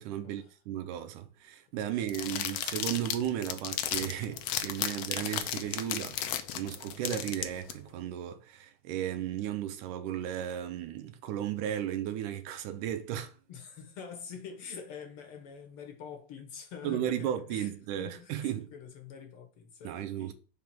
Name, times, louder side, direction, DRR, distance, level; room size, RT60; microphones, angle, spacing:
voice 1, 0.0-13.3 16.8-18.7 19.8-20.3, right 11 dB, 85° right, 2.3 m, -35 dB
sound 1, 2.1-7.7, left 11 dB, 75° left, 1.5 m, -34 dB
voice 2, 4.8-5.1 13.5-20.3, left 6 dB, 60° left, 1.6 m, -46 dB
5.7 x 3.5 x 5.8 m
omnidirectional pair, 3.5 m